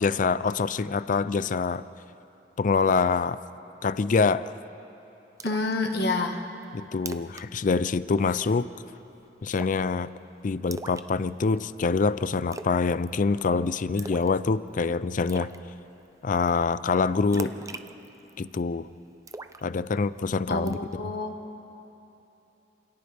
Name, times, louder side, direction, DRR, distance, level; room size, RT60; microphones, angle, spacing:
voice 1, 0.0-1.9 2.6-3.4 3.8-4.5 6.7-8.7 9.4-10.1 10.4-15.5 16.2-17.5 18.4-18.9 19.6-20.8 21.0-21.1, left 4 dB, 45° left, 16 dB, 0.4 m, -25 dB
voice 2, 5.4-6.5 20.5-21.4, left 2 dB, 65° left, 3 dB, 1.6 m, -28 dB
Splash splatter, 5.4-5.7 6.1-6.2 6.6-6.7 7.0-7.5 7.7-7.9 8.2-8.6 9.5-9.9 10.7-11.6 12.5-12.8 13.1-13.5 14.0-14.4 14.7-14.8 15.3-15.6 17.3-18.6 19.3-20.2 20.7-20.9, right 3 dB, 20° right, 0.5 m, -40 dB
27.5 x 27.0 x 3.5 m, 3.0 s
head